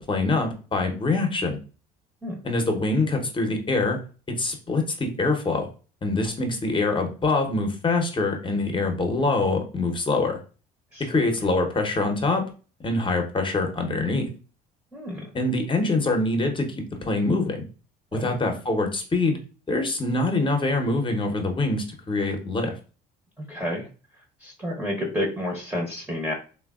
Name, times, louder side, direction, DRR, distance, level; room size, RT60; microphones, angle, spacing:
voice 1, 0.1-1.6 2.4-4.0 4.4-5.7 6.0-10.4 11.0-12.4 12.8-14.3 15.3-17.7 18.1-19.4 19.7-22.7, left 2 dB, 25° left, 4 dB, 0.8 m, -24 dB
voice 2, 10.9-11.2 14.9-15.3 18.1-18.4 23.4-23.9 24.4-26.3, left 1 dB, 5° right, -1 dB, 0.8 m, -30 dB
3.3 x 2.2 x 2.3 m, 0.36 s
hypercardioid pair, 70°, 20 cm